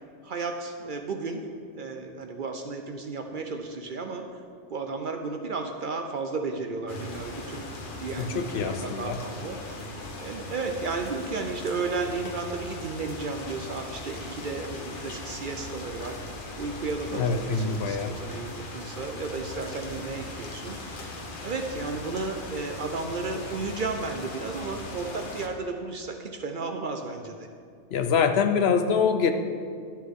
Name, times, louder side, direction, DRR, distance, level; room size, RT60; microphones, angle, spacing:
voice 1, 0.2-1.4 1.8-4.4 4.7-7.7 8.0-16.2 16.6-21.1 21.4-27.5, right 4 dB, 55° right, 5 dB, 0.6 m, -33 dB
sound 1, 6.9-25.5, left 2 dB, 50° left, 1.0 m, -39 dB
voice 2, 8.2-9.2 17.1-18.1 27.9-29.3, left 6 dB, 65° left, 8 dB, 0.8 m, -25 dB
10.5 x 7.4 x 3.6 m, 2.3 s
omnidirectional pair, 1.2 m